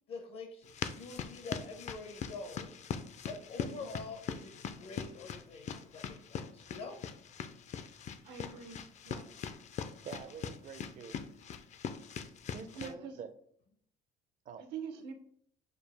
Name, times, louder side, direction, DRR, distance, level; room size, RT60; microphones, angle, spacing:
voice 1, 0.1-2.7 3.2-7.0, left 3 dB, 70° left, 4 dB, 0.8 m, -46 dB
sound 1, 0.6-12.9, left 7 dB, 45° left, 0.4 m, -42 dB
voice 2, 3.5-3.9 8.2-9.3 12.7-13.2 14.7-15.1, right 6 dB, 80° right, 6 dB, 0.8 m, -45 dB
voice 3, 9.8-11.2 12.2-13.3 14.5-14.7, right 7 dB, 50° right, 10 dB, 0.5 m, -47 dB
6.5 x 2.4 x 3.4 m, 0.64 s
cardioid pair, 110°, 17 cm